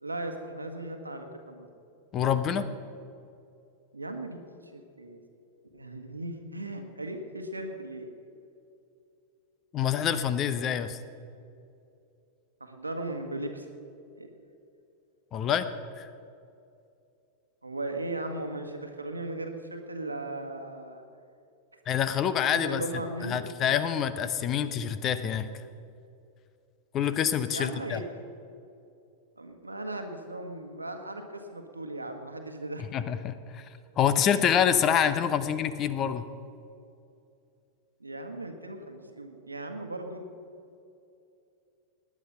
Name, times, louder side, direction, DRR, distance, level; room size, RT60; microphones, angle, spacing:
voice 1, 0.0-1.7 3.9-5.2 5.7-8.1 12.6-13.7 14.2-14.3 17.6-21.0 22.0-22.2 22.5-23.4 27.5-28.0 29.4-32.8 34.0-34.2 35.3-35.4 38.0-40.3, right 2 dB, 80° right, 5 dB, 1.5 m, -37 dB
voice 2, 2.1-2.7 9.7-11.0 15.3-15.7 16.0-16.1 21.9-22.8 23.2-25.5 26.9-28.0 32.9-33.6 34.0-36.2, left 8 dB, 30° left, 13 dB, 0.8 m, -26 dB
18.5 x 9.9 x 5.7 m, 2.6 s
figure-of-eight pair, 90°, 0 cm